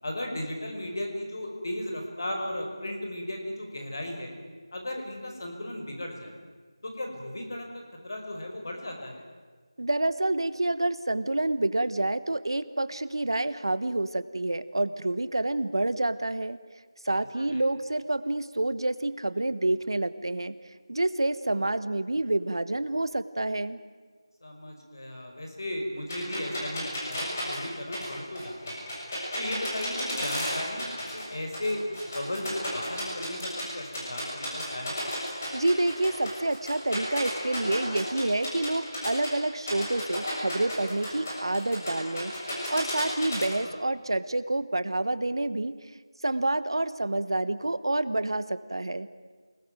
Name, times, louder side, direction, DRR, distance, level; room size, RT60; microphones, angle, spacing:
voice 1, 0.0-4.3 4.7-6.4 6.8-7.7 8.0-9.2 17.3-17.6 24.4-28.9 29.3-35.0 43.5-43.8, left 1 dB, 45° left, 3 dB, 5.3 m, -36 dB
voice 2, 9.8-16.6 17.0-20.6 20.9-23.8 35.5-42.3 42.7-45.7 46.2-49.1, right 2 dB, 60° right, 13 dB, 1.3 m, -28 dB
sound 1, 26.1-31.3 31.5-33.6 33.9-39.3 39.7-43.4, left 1 dB, 30° left, 7.0 m, -33 dB
28.5 x 20.5 x 9.2 m, 1.5 s
figure-of-eight pair, 175°, 3 cm